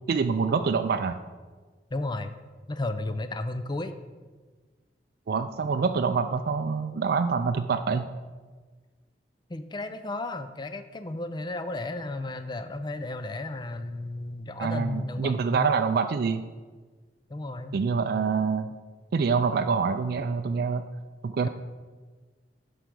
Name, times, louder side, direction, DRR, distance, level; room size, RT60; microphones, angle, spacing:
voice 1, 0.1-1.2 5.3-8.1 14.6-16.4 17.7-18.7 19.1-20.9 21.2-21.5, right 5 dB, 60° right, 7 dB, 0.4 m, -26 dB
voice 2, 1.9-2.3 2.7-3.9 9.5-15.7 17.3-17.8, left 2 dB, 25° left, 10 dB, 0.4 m, -33 dB
8.1 x 5.1 x 6.1 m, 1.4 s
head